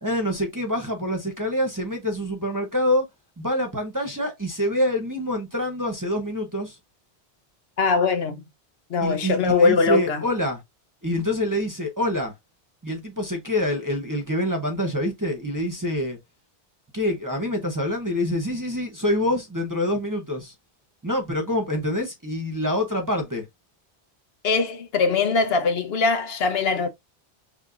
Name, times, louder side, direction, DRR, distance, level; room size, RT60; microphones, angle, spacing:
voice 1, 0.0-3.1 3.4-6.8 9.0-10.6 11.0-12.3 12.8-16.2 16.9-20.5 21.0-23.4, left 1 dB, 20° right, 0.8 m, -26 dB
voice 2, 7.8-8.4 8.9-10.2 24.4-26.9, left 4 dB, 65° left, 1.0 m, -21 dB
5.5 x 3.1 x 2.4 m
omnidirectional pair, 1.1 m